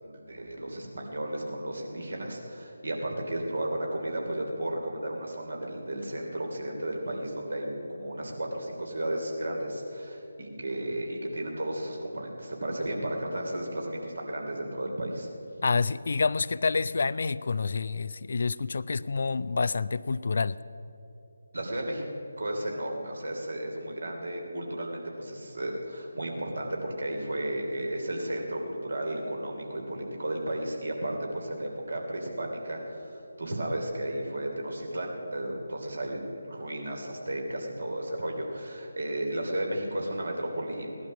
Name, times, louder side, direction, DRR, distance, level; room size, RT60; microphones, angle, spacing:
voice 1, 0.0-15.3 21.5-22.0 22.4-41.1, right 1 dB, 65° right, 1 dB, 3.0 m, -34 dB
voice 2, 15.6-20.6, left 4 dB, 50° left, 16 dB, 0.3 m, -28 dB
17.5 x 11.5 x 6.2 m, 2.9 s
figure-of-eight pair, 155°, 0 cm